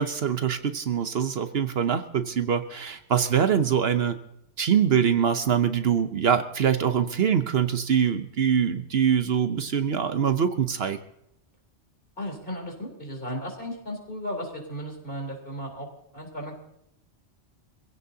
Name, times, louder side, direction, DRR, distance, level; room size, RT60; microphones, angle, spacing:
voice 1, 0.0-4.2 4.6-11.0, right 8 dB, 60° right, 9 dB, 1.0 m, -24 dB
voice 2, 12.2-16.5, equal, 50° left, 1 dB, 4.0 m, -35 dB
25.5 x 16.0 x 2.8 m, 0.78 s
omnidirectional pair, 1.2 m